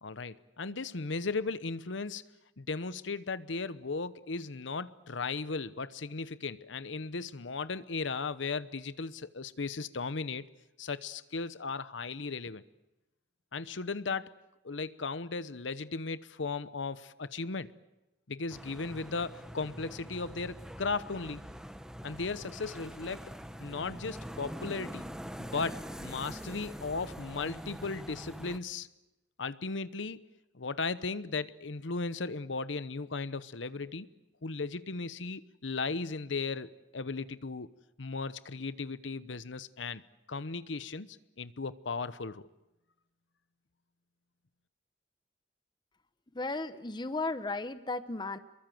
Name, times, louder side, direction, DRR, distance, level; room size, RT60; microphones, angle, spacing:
voice 1, 0.0-2.2 2.6-10.4 10.8-12.6 13.5-14.3 14.6-17.7 18.3-21.4 22.0-23.3 23.6-25.0 25.4-28.9 29.4-30.2 30.5-34.1 34.4-37.7 38.0-40.0 40.3-42.5, left 4 dB, 85° left, 15 dB, 0.9 m, -36 dB
sound 1, 18.5-28.6, equal, 5° right, 1.1 m, -44 dB
voice 2, 46.3-48.4, left 3 dB, 25° left, 12 dB, 0.9 m, -35 dB
27.5 x 22.5 x 7.8 m, 0.97 s
head